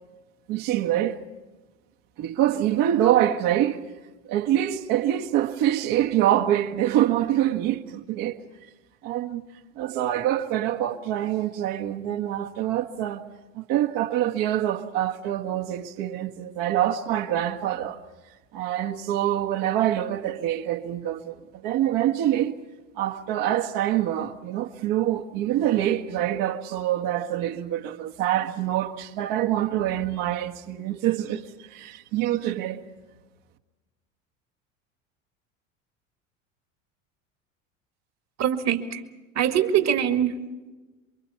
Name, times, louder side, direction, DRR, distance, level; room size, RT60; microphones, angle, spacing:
voice 1, 0.5-1.2 2.2-3.8 4.3-8.4 9.0-9.4 9.8-13.3 13.5-18.0 18.5-21.4 21.6-22.5 23.0-32.9, right 12 dB, 60° right, 1.8 m, -25 dB
voice 2, 38.4-39.0 39.3-40.4, right 9 dB, 45° right, 2.1 m, -23 dB
28.0 x 23.5 x 5.8 m
hypercardioid pair, 85°, 38 cm